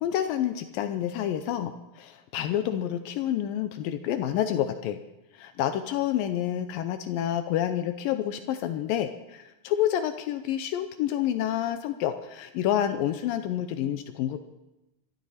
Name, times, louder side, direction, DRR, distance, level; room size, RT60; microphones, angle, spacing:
voice 1, 0.0-5.0 5.3-14.4, left 11 dB, 80° left, 9 dB, 2.4 m, -28 dB
25.0 x 12.5 x 4.2 m, 0.99 s
omnidirectional pair, 4.1 m